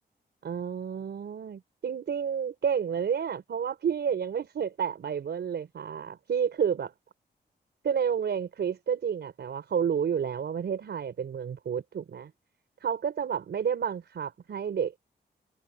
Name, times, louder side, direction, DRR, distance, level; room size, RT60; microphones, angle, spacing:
voice 1, 0.4-6.9 7.8-12.3 12.8-15.0, right 7 dB, 75° right, 4.6 m, -30 dB
wide cardioid pair, 105°, 18 cm